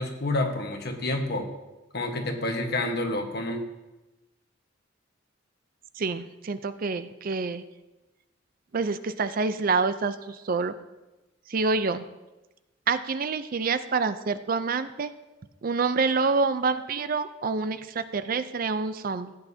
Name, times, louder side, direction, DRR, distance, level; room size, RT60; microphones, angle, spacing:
voice 1, 0.0-1.5 1.9-3.6, left 2 dB, 55° left, 4 dB, 1.2 m, -29 dB
voice 2, 6.0-7.6 8.7-10.7 11.5-12.0 12.9-15.1 15.6-19.3, right 4 dB, 45° right, 12 dB, 0.4 m, -27 dB
15.5 x 9.0 x 2.7 m, 1.1 s
head